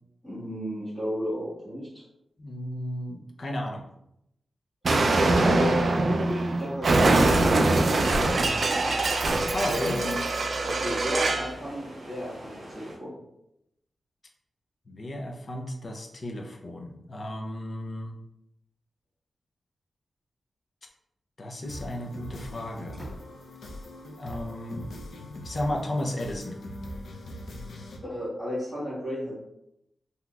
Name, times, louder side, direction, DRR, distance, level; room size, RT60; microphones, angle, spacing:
voice 1, 0.2-1.9 5.4-7.3 9.7-10.2 10.6-13.2 23.0-23.1 28.0-29.3, equal, 5° left, -12 dB, 1.5 m, -33 dB
voice 2, 2.4-3.9 9.5-10.0 14.9-18.2 21.4-23.0 24.2-24.9 25.4-26.6, left 1 dB, 35° left, 1 dB, 0.5 m, -33 dB
Explosion, 4.8-11.5, right 2 dB, 45° right, 0.3 m, -23 dB
sound 1, 7.2-13.0, right 1 dB, 70° right, 1.4 m, -44 dB
sound 2, 21.6-28.0, left 1 dB, 85° left, 0.5 m, -41 dB
3.9 x 2.8 x 2.3 m, 0.83 s
wide cardioid pair, 170°, 0 cm